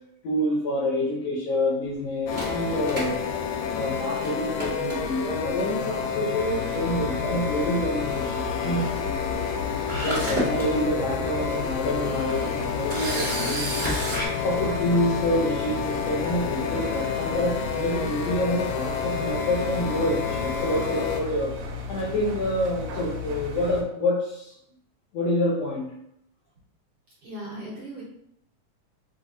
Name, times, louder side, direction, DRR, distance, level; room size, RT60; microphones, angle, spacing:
voice 1, 0.2-3.2 3.7-8.9 10.0-14.0 14.4-21.6 21.9-24.5 25.1-25.9, left 1 dB, 75° left, -4 dB, 1.6 m, -27 dB
sound 1, 2.3-21.2, left 6 dB, 90° left, 1.4 m, -30 dB
Camera, 2.3-3.9 4.2-4.3 4.6-5.4 6.3-6.6 6.9-7.0 9.5-9.6 9.9-10.6 11.2-11.3 12.9-14.3, right 1 dB, 15° right, 0.6 m, -30 dB
Engine, 6.4-23.8, left 3 dB, 70° right, 1.9 m, -35 dB
voice 2, 27.2-28.0, right 1 dB, 55° right, -6 dB, 1.7 m, -37 dB
6.1 x 2.9 x 2.6 m, 0.74 s
omnidirectional pair, 3.5 m